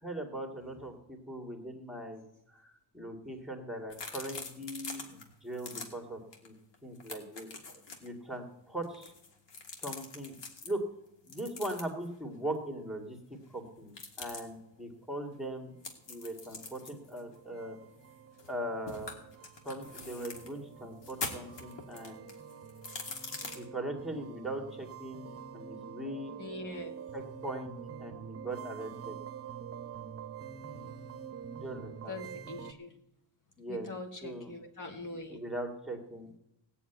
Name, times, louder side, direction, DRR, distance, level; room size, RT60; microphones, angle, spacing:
voice 1, 0.0-2.2 2.5-6.6 6.8-7.5 8.0-9.1 9.8-10.4 10.6-10.8 11.2-15.7 16.1-17.8 18.5-19.1 19.6-22.3 23.5-26.3 27.1-29.2 31.6-32.2 33.6-33.9 34.2-34.5 35.3-36.4, right 1 dB, ahead, 2 dB, 2.0 m, -40 dB
sound 1, 3.9-5.2 5.5-5.9 6.3-6.5 6.7-8.1 8.8-10.7 11.3-12.1 13.9-14.4 15.8-18.6 18.9-20.5 21.0-23.6, left 3 dB, 70° left, 2.7 m, -43 dB
sound 2, 15.8-32.7, right 8 dB, 30° right, 1.0 m, -47 dB
voice 2, 26.4-26.9 32.1-33.0 33.7-35.4, left 2 dB, 45° left, 3 dB, 1.8 m, -43 dB
17.0 x 7.1 x 9.1 m, 0.87 s
wide cardioid pair, 155°, 44 cm